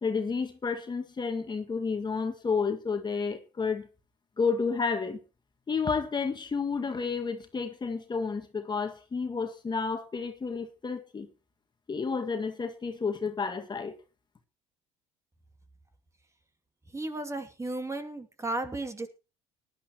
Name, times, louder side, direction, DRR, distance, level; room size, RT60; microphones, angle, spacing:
voice 1, 0.0-3.9 4.4-5.2 5.7-11.3 11.9-13.9, left 5 dB, 30° left, 1.9 m, -31 dB
voice 2, 16.9-19.1, right 2 dB, 20° right, 2.5 m, -34 dB
19.0 x 11.5 x 3.0 m
hypercardioid pair, 75°, 16 cm